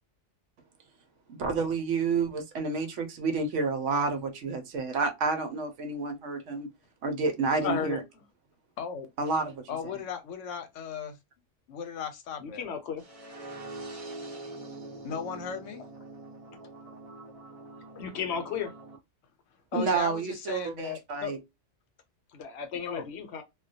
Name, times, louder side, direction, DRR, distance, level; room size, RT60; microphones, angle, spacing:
voice 1, 1.4-6.7 7.0-8.0 9.2-9.6 19.7-21.4, right 4 dB, 80° right, 1.0 m, -29 dB
voice 2, 7.6-8.0 12.4-13.0 18.0-18.7 22.3-23.4, left 6 dB, 65° left, 0.8 m, -34 dB
voice 3, 8.8-9.1 9.7-11.2 11.7-12.6 15.0-15.8 19.7-21.3 22.9-23.1, left 7 dB, 85° left, 0.9 m, -37 dB
sound 1, 13.0-19.0, right 2 dB, 40° right, 0.6 m, -44 dB
2.2 x 2.2 x 2.5 m
omnidirectional pair, 1.3 m